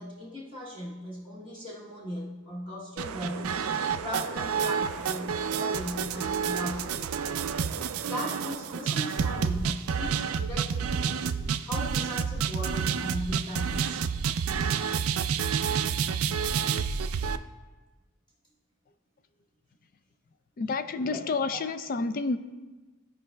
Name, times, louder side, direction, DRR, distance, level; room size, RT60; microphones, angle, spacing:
voice 1, 0.0-3.6 4.0-7.2 8.0-14.0 21.1-21.2 21.5-21.6, equal, 25° left, -6 dB, 1.0 m, -38 dB
sound 1, 3.0-17.4, right 6 dB, 90° right, 0.4 m, -29 dB
voice 2, 20.6-22.4, left 3 dB, 45° left, 11 dB, 0.4 m, -29 dB
15.5 x 5.2 x 2.2 m, 1.2 s
head